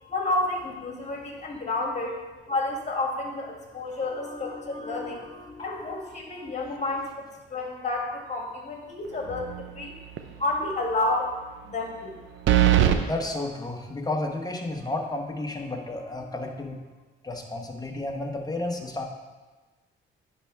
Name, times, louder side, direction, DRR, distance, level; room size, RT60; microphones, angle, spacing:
voice 1, 0.1-2.2 2.5-5.2 5.6-7.3 7.5-9.4 9.8-10.0 10.4-11.4 11.6-12.2, left 2 dB, 35° left, 0 dB, 1.8 m, -30 dB
voice 2, 4.2-6.5 13.0-16.8 17.2-19.0, left 2 dB, 20° left, 2 dB, 1.1 m, -33 dB
sound 1, 9.3-9.8 10.2-10.3 12.5-13.0, right 11 dB, 75° right, 0.6 m, -20 dB
9.9 x 3.5 x 4.5 m, 1.3 s
cardioid pair, 90°, 20 cm